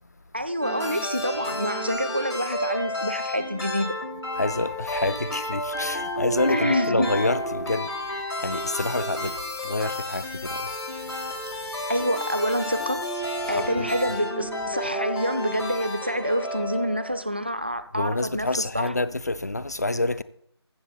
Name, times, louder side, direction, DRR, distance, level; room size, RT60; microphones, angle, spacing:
voice 1, 0.3-4.0 6.5-7.1 11.9-13.0 13.5-18.9, equal, 25° right, 0.4 m, -27 dB
sound 1, 0.6-17.2, left 1 dB, 75° left, 3.7 m, -31 dB
voice 2, 4.3-7.9 8.4-9.4 9.6-10.7 13.5-13.9 17.9-20.2, left 2 dB, 40° left, 0.4 m, -27 dB
14.5 x 7.5 x 4.1 m
figure-of-eight pair, 175°, 14 cm